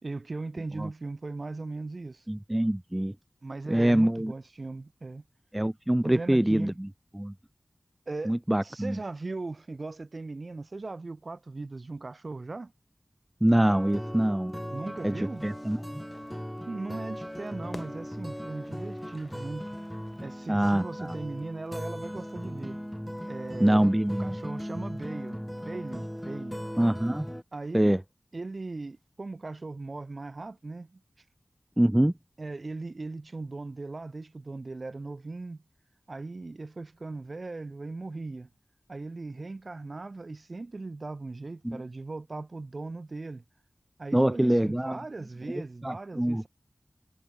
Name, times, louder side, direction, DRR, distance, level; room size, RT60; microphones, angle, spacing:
voice 1, 0.0-2.2 3.4-5.2 6.0-6.8 8.1-8.4 8.6-12.7 14.7-15.4 16.7-19.7 20.2-22.8 23.3-23.9 24.2-26.6 27.5-28.0 28.3-31.0 32.4-35.6 36.1-38.5 38.9-43.4 44.0-46.5, right 3 dB, 60° right, 1.3 m, -38 dB
voice 2, 2.3-3.1 3.7-4.3 5.5-6.9 7.1-7.3 8.3-9.0 13.4-14.5 15.0-15.1 15.4-16.0 20.5-21.2 23.6-24.4 26.8-27.3 27.7-28.0 31.8-32.1 41.6-41.8 44.1-45.0 45.8-46.4, right 1 dB, 15° right, 0.6 m, -24 dB
sound 1, 13.7-27.4, equal, 5° left, 1.5 m, -38 dB
Fire / Fireworks, 15.0-20.5, left 2 dB, 50° left, 7.5 m, -54 dB
cardioid pair, 45°, 0 cm